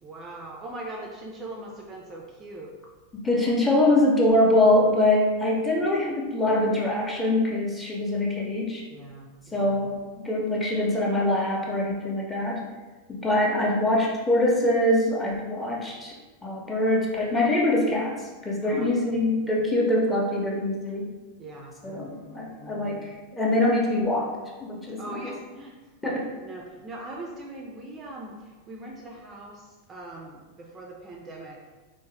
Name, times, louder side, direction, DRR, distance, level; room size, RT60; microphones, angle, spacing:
voice 1, 0.0-2.7 8.9-9.8 15.9-16.0 18.6-18.9 19.2-19.5 21.4-23.1 25.0-25.8 26.4-31.6, right 2 dB, 25° right, -1 dB, 0.4 m, -41 dB
voice 2, 3.1-8.8 9.5-12.6 13.1-16.1 16.4-18.2 18.4-21.1 21.8-24.3 24.6-25.3 26.0-26.3, left 1 dB, 10° left, -3 dB, 0.7 m, -24 dB
3.5 x 2.0 x 3.1 m, 1.3 s
figure-of-eight pair, 90°, 0 cm